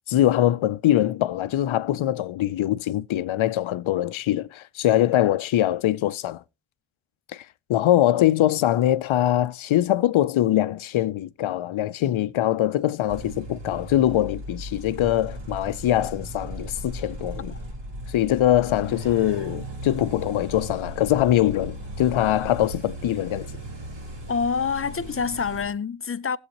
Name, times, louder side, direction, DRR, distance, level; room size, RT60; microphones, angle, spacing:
voice 1, 0.1-6.4 7.3-17.5 18.1-23.5, left 13 dB, 85° left, 0.6 m, -23 dB
sound 1, 13.1-25.7, right 1 dB, 60° right, 4.3 m, -37 dB
voice 2, 24.3-26.4, left 5 dB, 30° left, 0.5 m, -26 dB
19.0 x 8.1 x 3.0 m
wide cardioid pair, 100°, 47 cm